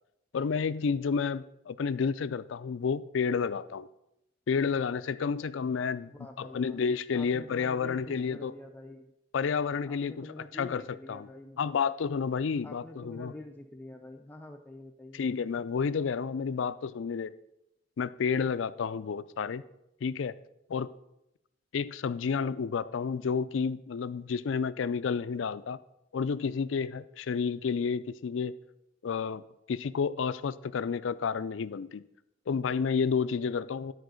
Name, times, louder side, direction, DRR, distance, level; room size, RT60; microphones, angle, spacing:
voice 1, 0.3-3.9 4.5-8.5 9.3-10.3 10.5-10.8 11.1-11.3 11.6-13.3 15.1-17.3 18.0-19.6 20.0-20.3 20.7-20.9 21.7-25.8 26.1-28.5 29.0-29.4 29.7-32.0 32.5-33.9, left 5 dB, 75° left, 15 dB, 0.4 m, -30 dB
voice 2, 6.1-6.8 7.1-9.1 9.8-11.8 12.6-15.2, left 1 dB, 10° left, 3 dB, 0.5 m, -47 dB
12.0 x 4.6 x 6.3 m, 0.84 s
head